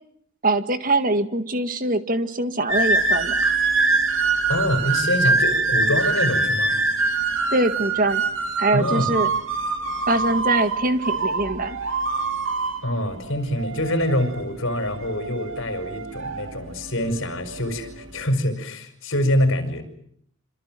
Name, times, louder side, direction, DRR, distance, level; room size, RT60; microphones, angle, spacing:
voice 1, 0.4-3.4 7.5-8.2 8.6-9.3 10.1-11.8, right 2 dB, 40° right, 9 dB, 1.9 m, -23 dB
sound 1, 2.7-18.3, right 3 dB, 65° right, 3.1 m, -24 dB
voice 2, 4.5-6.8 8.7-9.1 12.8-19.8, left 1 dB, 65° left, 9 dB, 5.6 m, -25 dB
27.0 x 27.0 x 7.7 m, 0.68 s
head